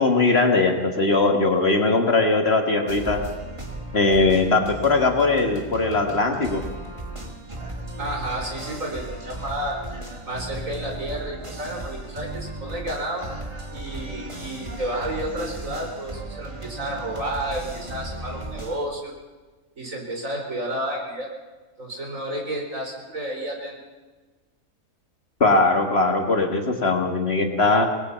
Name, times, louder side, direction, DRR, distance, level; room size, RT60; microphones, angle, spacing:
voice 1, 0.0-3.2 3.9-6.6 25.4-27.9, left 3 dB, 50° left, 4 dB, 1.8 m, -20 dB
sound 1, 2.9-18.8, right 1 dB, 20° right, 2.0 m, -36 dB
voice 2, 8.0-9.8 10.2-13.2 13.7-19.1 19.8-21.3 21.8-23.8, right 1 dB, 70° right, 0 dB, 4.9 m, -31 dB
24.5 x 19.0 x 5.7 m, 1.3 s
omnidirectional pair, 1.4 m